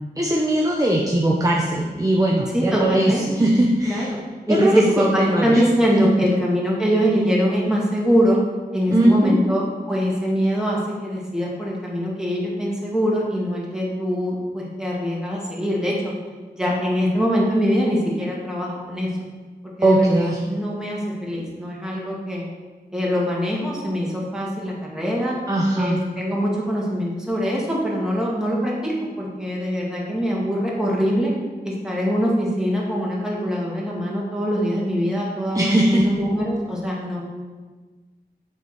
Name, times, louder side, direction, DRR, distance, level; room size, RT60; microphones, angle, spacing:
voice 1, 0.2-4.1 4.5-5.6 6.0-6.3 8.9-9.4 19.8-20.4 25.5-26.0 35.5-36.1, right 1 dB, 20° right, -1 dB, 0.8 m, -19 dB
voice 2, 2.5-3.3 3.8-4.2 4.5-8.4 8.7-16.1 16.5-19.1 19.8-22.5 22.9-25.4 25.7-31.3 31.6-37.2, equal, 5° right, -4 dB, 1.9 m, -23 dB
6.9 x 4.7 x 4.4 m, 1.4 s
wide cardioid pair, 55°, 17 cm